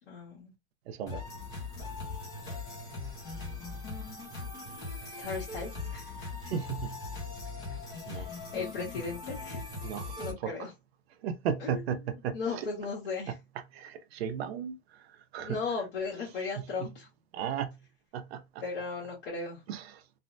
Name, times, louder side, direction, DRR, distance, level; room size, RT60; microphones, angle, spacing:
voice 1, 0.1-0.5 5.2-6.3 8.1-9.6 10.2-10.7 11.6-13.3 15.5-17.1 18.6-19.6, left 4 dB, 55° left, 1.3 m, -37 dB
voice 2, 0.9-1.2 6.4-7.0 8.1-8.3 9.8-10.7 11.2-12.7 13.3-13.4 13.7-15.6 16.6-16.7 17.3-17.8 18.1-18.6 19.7-20.0, right 8 dB, 65° right, 0.6 m, -35 dB
sound 1, 1.1-10.3, left 3 dB, 10° left, 0.4 m, -40 dB
3.2 x 2.0 x 2.5 m
supercardioid pair, 170°, 34 cm